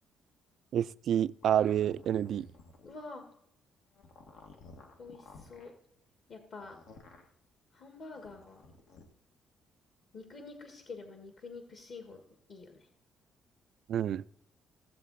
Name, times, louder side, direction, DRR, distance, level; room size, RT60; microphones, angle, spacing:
voice 1, 0.7-2.5 13.9-14.2, right 10 dB, 65° right, 0.3 m, -28 dB
sound 1, 1.4-3.0 3.9-5.7 6.6-7.3 8.1-9.0, left 3 dB, 80° left, 2.0 m, -54 dB
voice 2, 2.8-3.3 5.0-5.7 6.3-6.8 7.7-8.6 10.1-12.2 12.5-12.9, left 3 dB, 50° left, 1.8 m, -47 dB
16.0 x 7.6 x 4.1 m
cardioid pair, 125°, 0 cm